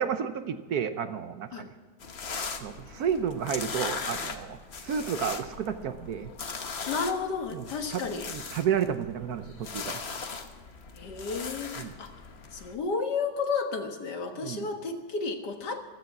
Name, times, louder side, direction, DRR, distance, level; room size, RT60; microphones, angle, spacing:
voice 1, 0.0-1.7 2.6-6.3 7.5-10.0 11.8-11.9 14.3-14.7, right 8 dB, 65° right, 9 dB, 1.2 m, -31 dB
sound 1, 2.0-12.7, left 5 dB, 40° left, 1.1 m, -39 dB
voice 2, 6.9-8.3 11.0-12.1 12.5-15.8, left 4 dB, 70° left, 4 dB, 2.1 m, -32 dB
15.0 x 13.0 x 6.1 m, 1.3 s
omnidirectional pair, 1.9 m